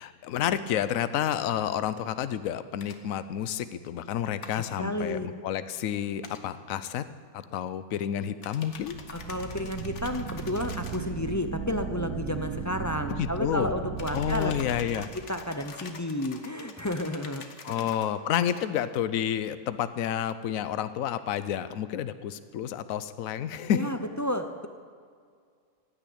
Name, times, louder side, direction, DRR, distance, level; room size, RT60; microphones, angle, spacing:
voice 1, 0.0-7.0 7.3-8.9 13.2-13.7 14.1-15.1 17.6-23.9, left 10 dB, 70° left, 13 dB, 1.1 m, -30 dB
sound 1, 2.8-3.0 4.4-4.6 6.2-6.4 8.4-11.1 14.0-18.1 18.5-18.7, left 5 dB, 55° left, 1.4 m, -46 dB
voice 2, 4.8-5.3 9.1-14.5 14.9-15.0 15.3-17.9 23.7-24.7, left 1 dB, 30° left, 7 dB, 0.3 m, -32 dB
sound 2, 8.7-15.7, right 7 dB, 70° right, 1.2 m, -37 dB
16.0 x 9.8 x 8.6 m, 2.1 s
omnidirectional pair, 1.6 m